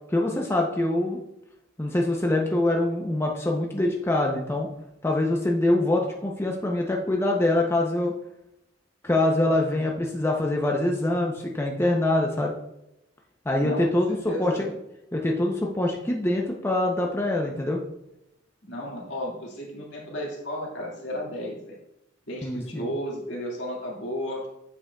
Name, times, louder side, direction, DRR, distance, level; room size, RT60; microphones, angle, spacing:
voice 1, 0.1-1.2 1.8-4.7 5.0-8.1 9.0-12.5 13.5-14.7 15.1-17.8 22.4-22.9, left 1 dB, 15° left, 0 dB, 0.6 m, -24 dB
voice 2, 13.6-14.6 18.6-21.7 22.3-24.4, equal, 70° left, -3 dB, 2.0 m, -33 dB
8.0 x 6.0 x 2.3 m, 0.85 s
head